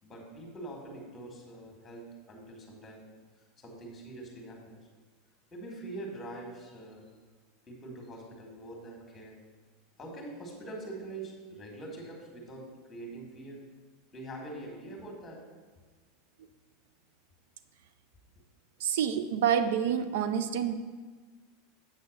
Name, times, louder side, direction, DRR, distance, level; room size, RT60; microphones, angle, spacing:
voice 1, 0.0-3.1 3.6-4.8 5.5-7.1 7.7-9.4 10.0-13.6 14.1-15.4, right 2 dB, 15° left, 0 dB, 1.8 m, -44 dB
voice 2, 18.8-20.8, right 8 dB, 75° right, 11 dB, 0.4 m, -28 dB
7.9 x 4.0 x 6.5 m, 1.4 s
supercardioid pair, 145°, 0 cm